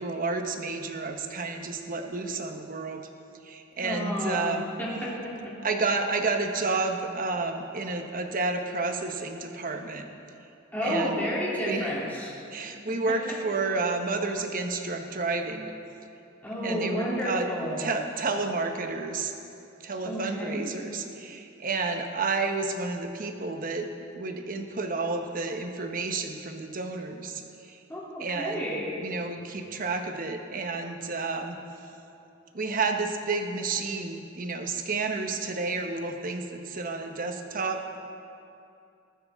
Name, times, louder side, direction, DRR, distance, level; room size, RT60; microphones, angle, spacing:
voice 1, 0.0-3.1 3.4-4.7 5.6-10.1 10.8-11.2 11.6-11.9 12.5-15.7 16.6-17.5 17.8-19.3 19.8-23.9 24.1-27.8 28.2-28.6 29.0-31.6 32.5-38.0, right 3 dB, 45° right, 5 dB, 1.1 m, -30 dB
voice 2, 3.8-5.5 10.7-12.3 16.4-17.9 20.0-20.8 27.9-28.9, equal, 10° left, -7 dB, 2.9 m, -31 dB
19.5 x 12.5 x 3.6 m, 2.6 s
head